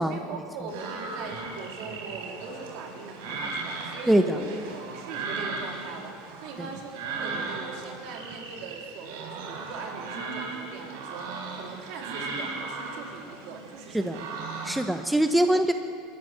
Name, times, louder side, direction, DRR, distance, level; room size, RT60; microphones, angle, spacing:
voice 1, 0.1-4.6 4.9-14.3, right 4 dB, 60° right, 1 dB, 3.8 m, -41 dB
sound 1, 0.7-15.0, right 3 dB, 75° right, 4.3 m, -37 dB
voice 2, 14.6-15.7, right 1 dB, 5° right, 7 dB, 0.9 m, -22 dB
20.5 x 13.5 x 9.5 m, 2.4 s
supercardioid pair, 125°, 0 cm